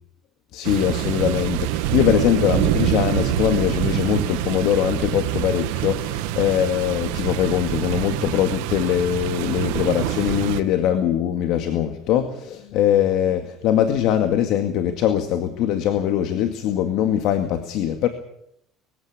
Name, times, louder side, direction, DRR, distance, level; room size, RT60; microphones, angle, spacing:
voice 1, 0.5-18.1, left 10 dB, 65° left, 7 dB, 2.1 m, -22 dB
sound 1, 0.6-10.6, right 13 dB, 85° right, 1.6 m, -25 dB
22.0 x 16.0 x 8.6 m, 0.76 s
cardioid pair, 125°, 0 cm